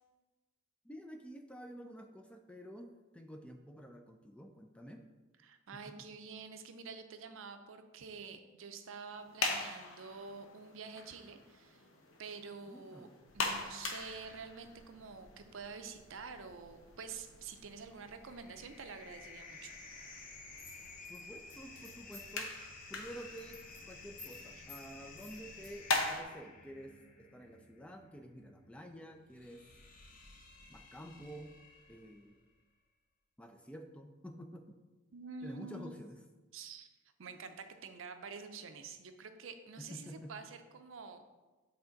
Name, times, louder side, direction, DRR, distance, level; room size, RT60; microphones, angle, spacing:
voice 1, 0.8-2.9 3.1-5.0 12.7-13.1 21.1-22.5 22.9-23.6 23.9-26.9 27.3-29.6 30.7-31.5 31.9-32.4 33.4-34.6 35.4-36.2 39.8-40.3, equal, 5° left, 5 dB, 0.3 m, -49 dB
voice 2, 5.4-11.8 12.2-13.1 13.3-19.7 35.1-35.9 36.5-36.9 37.2-41.3, right 5 dB, 70° right, 8 dB, 0.5 m, -48 dB
sound 1, 9.1-26.2, left 3 dB, 75° left, 0.8 m, -43 dB
sound 2, 17.7-32.3, left 3 dB, 40° left, 0.8 m, -54 dB
sound 3, 20.6-22.4 22.8-23.0 23.3-23.8 24.2-24.4 24.7-24.8 25.2-25.7, left 3 dB, 25° left, 1.7 m, -53 dB
8.0 x 3.4 x 3.9 m, 1.2 s
head